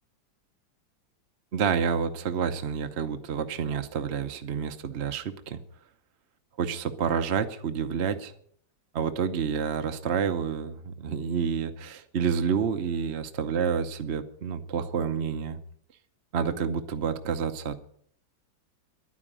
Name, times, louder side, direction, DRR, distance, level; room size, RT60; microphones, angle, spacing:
voice 1, 1.5-5.6 6.6-8.3 8.9-15.6 16.3-17.7, right 6 dB, 50° right, 7 dB, 0.9 m, -29 dB
11.5 x 10.0 x 8.9 m, 0.64 s
omnidirectional pair, 2.0 m